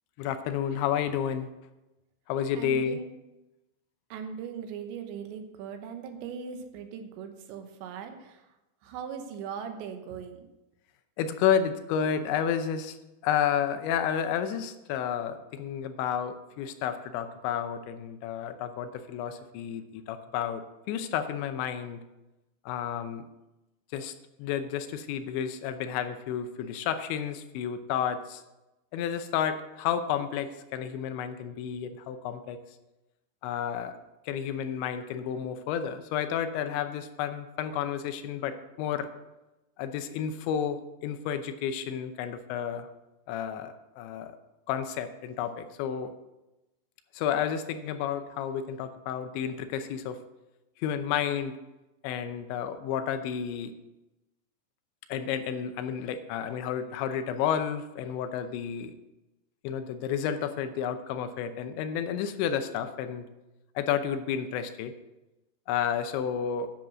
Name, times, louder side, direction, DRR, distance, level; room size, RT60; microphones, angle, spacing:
voice 1, 0.2-1.5 2.3-3.0 11.2-13.0 13.2-22.0 22.7-23.2 23.9-24.1 24.4-28.4 28.9-32.6 33.4-34.0 34.3-39.1 39.8-42.9 43.3-44.4 44.7-46.1 47.1-50.2 50.8-51.6 52.0-53.7 55.1-58.9 59.6-63.3 63.8-64.9 65.7-66.7, left 8 dB, 85° left, 9 dB, 3.1 m, -31 dB
voice 2, 2.5-3.1 4.1-8.5 8.8-10.5, right 7 dB, 80° right, 6 dB, 3.3 m, -39 dB
10.5 x 7.3 x 6.2 m, 1.0 s
omnidirectional pair, 5.2 m